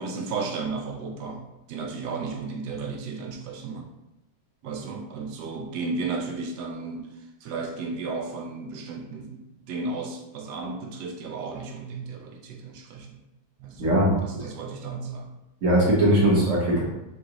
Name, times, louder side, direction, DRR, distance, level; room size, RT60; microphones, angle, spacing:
voice 1, 0.0-3.9 4.6-7.1 7.4-13.2 13.6-15.3, right 4 dB, 75° right, 3 dB, 0.9 m, -34 dB
voice 2, 13.8-14.2 15.6-16.8, right 1 dB, 50° right, -4 dB, 1.0 m, -20 dB
3.7 x 3.7 x 2.9 m, 0.91 s
omnidirectional pair, 2.3 m